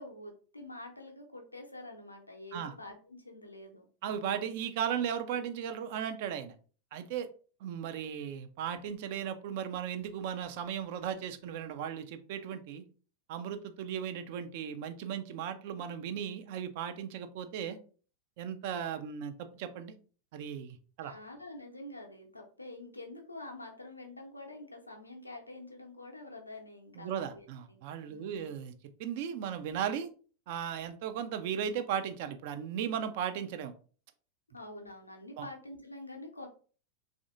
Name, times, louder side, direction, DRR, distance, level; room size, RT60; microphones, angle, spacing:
voice 1, 0.0-3.9 21.0-27.8 28.1-28.5 34.5-36.5, left 2 dB, 85° left, 2 dB, 0.6 m, -47 dB
voice 2, 4.0-6.5 6.9-7.3 7.6-12.8 13.3-17.8 18.4-19.9 20.3-21.1 26.9-28.7 29.0-30.1 30.5-33.7 35.4-35.5, right 8 dB, 50° right, 9 dB, 0.4 m, -36 dB
3.3 x 2.4 x 2.4 m, 0.39 s
figure-of-eight pair, 90°, 0 cm